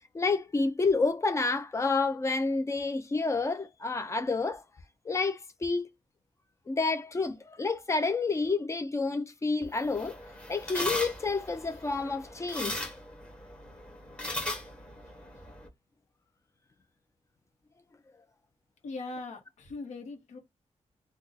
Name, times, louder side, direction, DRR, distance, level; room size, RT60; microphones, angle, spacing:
voice 1, 0.1-4.6 5.1-5.9 6.7-10.2 10.5-12.9, left 3 dB, 25° left, 0.4 m, -29 dB
sound 1, 9.6-15.7, left 1 dB, 10° left, 1.1 m, -38 dB
voice 2, 18.8-20.4, left 3 dB, 90° left, 1.0 m, -40 dB
2.5 x 2.3 x 3.8 m
wide cardioid pair, 170°, 12 cm